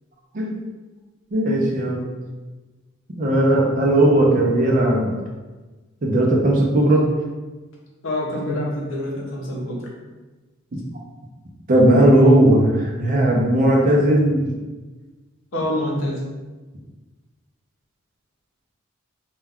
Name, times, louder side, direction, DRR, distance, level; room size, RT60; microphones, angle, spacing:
voice 1, 0.3-0.7 1.3-2.1 3.1-5.1 6.0-7.1 10.7-10.8 11.7-14.4, right 1 dB, 40° right, -2 dB, 0.4 m, -17 dB
voice 2, 8.0-9.9 15.5-16.2, left 1 dB, 65° left, -3 dB, 0.6 m, -26 dB
2.3 x 2.2 x 3.5 m, 1.2 s
head